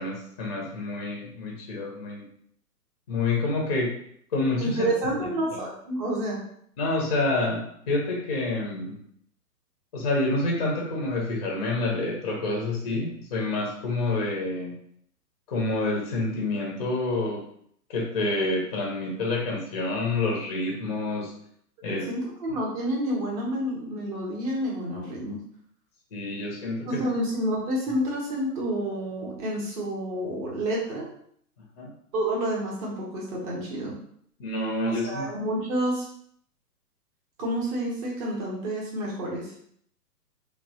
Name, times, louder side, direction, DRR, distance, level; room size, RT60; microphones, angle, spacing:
voice 1, 0.0-2.2 3.1-3.9 4.3-4.8 5.3-5.6 6.8-9.0 9.9-14.7 15.5-17.4 17.9-21.3 21.8-22.0 22.5-22.6 26.1-27.0 31.8-31.9 34.4-35.3, left 2 dB, 25° left, -2 dB, 0.5 m, -28 dB
voice 2, 4.6-6.4 21.8-25.4 26.9-31.1 32.1-34.0 34.8-36.1 37.4-39.5, right 1 dB, 25° right, -3 dB, 0.6 m, -29 dB
3.1 x 2.0 x 2.7 m, 0.66 s
hypercardioid pair, 130°, 48 cm